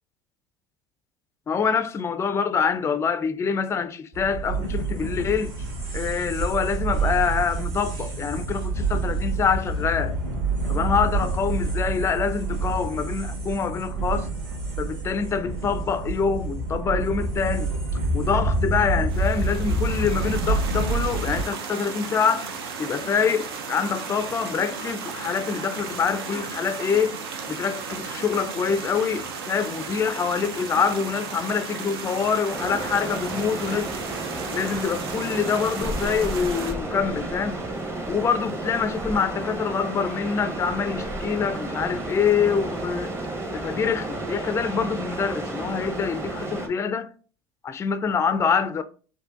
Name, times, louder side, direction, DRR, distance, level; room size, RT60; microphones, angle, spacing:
voice 1, 1.5-5.5 5.9-10.2 10.7-14.3 14.8-17.7 18.1-22.5 22.8-27.2 27.5-33.9 34.5-37.6 38.1-43.1 43.5-47.1 47.6-48.8, left 6 dB, 20° left, 0.3 m, -25 dB
sound 1, 4.1-21.4, right 3 dB, 55° right, 1.7 m, -27 dB
sound 2, 19.1-36.7, right 5 dB, 85° right, 0.6 m, -35 dB
sound 3, 32.5-46.7, right 2 dB, 20° right, 0.8 m, -32 dB
4.3 x 2.5 x 2.4 m
hypercardioid pair, 80°, 12 cm